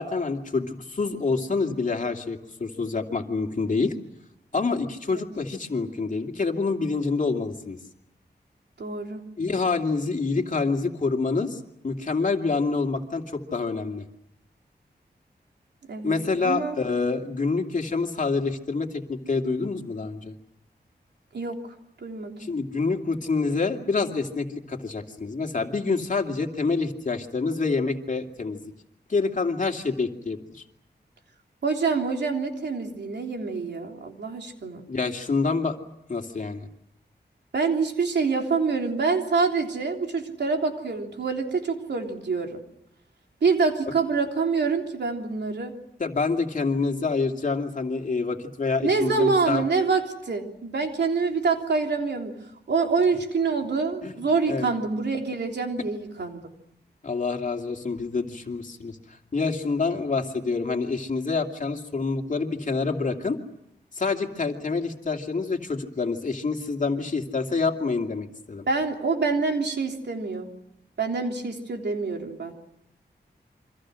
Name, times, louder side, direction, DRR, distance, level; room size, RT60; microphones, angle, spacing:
voice 1, 0.0-3.9 4.5-7.8 9.4-14.0 16.0-20.4 22.5-28.6 29.1-30.6 34.9-35.8 36.1-36.7 46.0-49.6 54.0-54.2 54.5-54.7 57.0-59.0 59.3-63.4 63.9-68.6, left 4 dB, 50° left, 4 dB, 2.6 m, -27 dB
voice 2, 8.8-9.3 15.9-16.7 21.3-21.7 22.0-22.6 31.6-34.9 37.5-42.6 43.4-45.7 48.8-52.4 52.7-56.4 68.7-70.5 71.0-72.5, right 4 dB, 85° right, 3 dB, 3.4 m, -26 dB
28.0 x 25.0 x 6.4 m, 0.82 s
wide cardioid pair, 105°, 17 cm